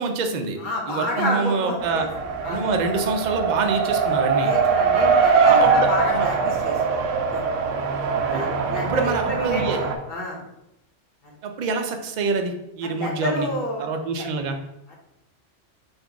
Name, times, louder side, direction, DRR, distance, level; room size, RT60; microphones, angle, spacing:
voice 1, 0.0-0.6 0.9-2.0 2.5-4.5 5.4-6.3 8.2-9.8 11.4-13.5 13.8-14.6, right 4 dB, 50° right, 5 dB, 0.6 m, -26 dB
voice 2, 0.6-2.0 2.4-2.6 4.4-6.8 7.1-7.4 8.3-10.4 12.8-13.9 14.2-14.3, left 1 dB, 45° left, -3 dB, 1.2 m, -29 dB
Race car auto racing, 1.8-10.0, right 5 dB, 90° right, 1.0 m, -22 dB
4.1 x 2.6 x 4.5 m, 0.85 s
omnidirectional pair, 1.2 m